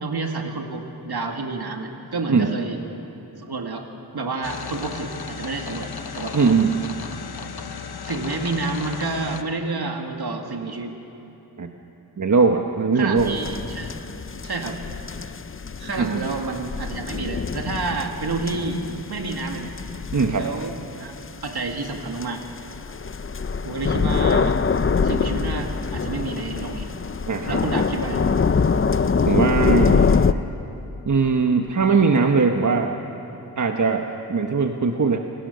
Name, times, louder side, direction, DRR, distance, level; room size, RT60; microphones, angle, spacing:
voice 1, 0.0-2.8 3.4-3.9 4.1-6.4 8.1-10.9 12.9-13.9 14.4-14.8 15.8-18.8 19.1-19.7 20.3-21.1 21.4-22.4 23.6-24.6 25.0-27.0 27.5-28.3, right 3 dB, 70° right, 3 dB, 2.2 m, -29 dB
sound 1, 4.4-9.4, left 6 dB, 70° left, 1.1 m, -35 dB
voice 2, 6.3-6.7 11.6-11.7 12.2-13.4 16.0-16.3 20.1-20.5 27.3-27.6 29.3-30.0 31.1-32.9 33.6-35.2, right 4 dB, 50° right, 4 dB, 1.2 m, -20 dB
sound 2, 13.2-30.3, left 5 dB, 35° left, 0.6 m, -24 dB
28.5 x 18.5 x 6.8 m, 3.0 s
wide cardioid pair, 70°, 39 cm